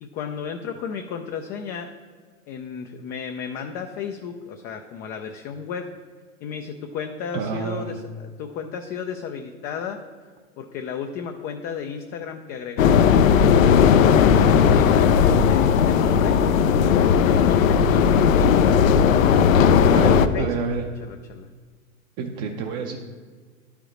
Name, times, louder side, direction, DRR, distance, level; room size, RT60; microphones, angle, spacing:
voice 1, 0.0-1.9 2.5-5.9 6.4-10.0 10.6-16.4 17.1-18.6 19.6-20.7 21.1-21.5, left 7 dB, 25° left, 5 dB, 0.4 m, -34 dB
voice 2, 7.3-7.9 19.9-20.8 22.2-23.0, right 5 dB, 40° right, 2 dB, 0.7 m, -28 dB
sound 1, 12.8-20.3, left 7 dB, 75° left, 0.6 m, -16 dB
11.5 x 5.0 x 3.1 m, 1.5 s
hypercardioid pair, 100°, 40 cm